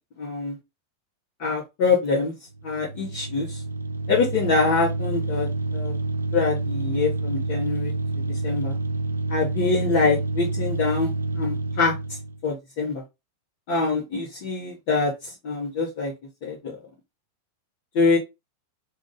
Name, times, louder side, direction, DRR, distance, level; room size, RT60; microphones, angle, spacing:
voice 1, 0.2-0.5 1.4-2.3 2.6-3.6 4.1-6.0 6.3-7.9 8.4-8.7 9.3-12.2 12.4-13.0 13.7-16.1 16.4-16.7 17.9-18.2, left 4 dB, 50° left, -4 dB, 1.3 m, -25 dB
sound 1, 2.5-12.4, right 2 dB, 75° right, 0.3 m, -28 dB
3.8 x 2.7 x 3.9 m, 0.23 s
figure-of-eight pair, 90°, 0 cm